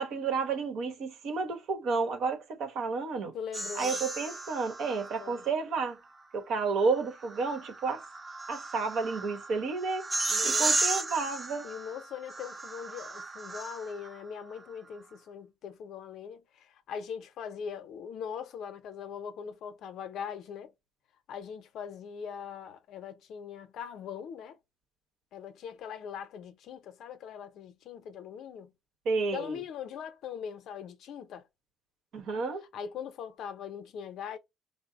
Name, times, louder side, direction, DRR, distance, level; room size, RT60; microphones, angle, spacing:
voice 1, 0.0-3.3 3.7-6.0 6.3-8.0 8.5-10.0 10.4-11.7 29.0-29.6 32.1-32.6, right 4 dB, 65° right, 1.0 m, -31 dB
voice 2, 3.3-4.0 4.8-5.4 10.3-10.7 11.6-20.7 21.3-24.6 25.3-28.7 29.3-31.4 32.7-34.4, left 7 dB, 65° left, 0.6 m, -41 dB
sound 1, 3.5-5.5 6.9-14.1, right 3 dB, 20° right, 0.5 m, -34 dB
3.7 x 2.0 x 3.8 m
cardioid pair, 115°, 0 cm